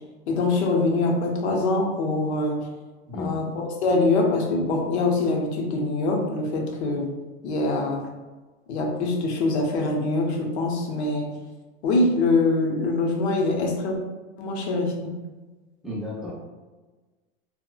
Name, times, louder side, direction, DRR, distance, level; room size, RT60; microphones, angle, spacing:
voice 1, 0.3-2.7 3.2-7.2 7.4-8.1 8.7-11.3 11.8-14.0 14.4-15.2, left 2 dB, 75° left, 1 dB, 0.8 m, -24 dB
voice 2, 3.1-3.5 15.8-16.3, left 2 dB, ahead, -7 dB, 0.3 m, -33 dB
4.1 x 2.1 x 2.2 m, 1.3 s
supercardioid pair, 150°, 34 cm